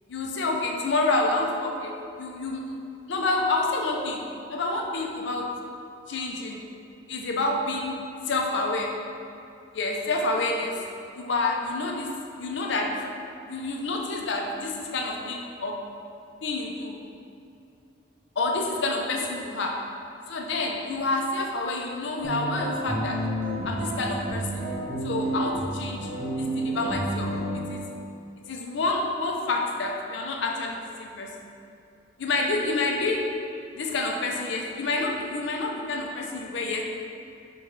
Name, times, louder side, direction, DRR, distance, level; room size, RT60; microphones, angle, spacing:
voice 1, 0.1-2.7 3.1-4.2 4.5-5.6 6.1-6.6 7.1-9.0 9.7-10.8 11.1-13.1 13.5-15.9 16.4-17.0 18.4-19.9 20.3-23.3 23.6-24.7 25.0-26.1 26.4-27.9 28.5-31.4 32.2-33.3 33.7-36.8, left 2 dB, 65° left, 0 dB, 0.5 m, -28 dB
sound 1, 22.2-27.6, right 1 dB, 30° right, 0.9 m, -30 dB
4.6 x 2.3 x 4.7 m, 2.6 s
head